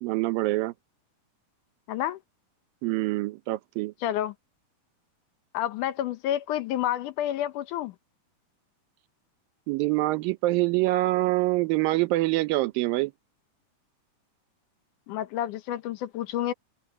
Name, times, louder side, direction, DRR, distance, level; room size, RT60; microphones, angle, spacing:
voice 1, 0.0-0.7 2.8-3.9 9.7-13.1, right 19 dB, 90° right, 2.5 m, -25 dB
voice 2, 1.9-2.2 4.0-4.3 5.5-7.9 15.1-16.5, left 12 dB, 75° left, 2.2 m, -29 dB
omnidirectional pair, 3.9 m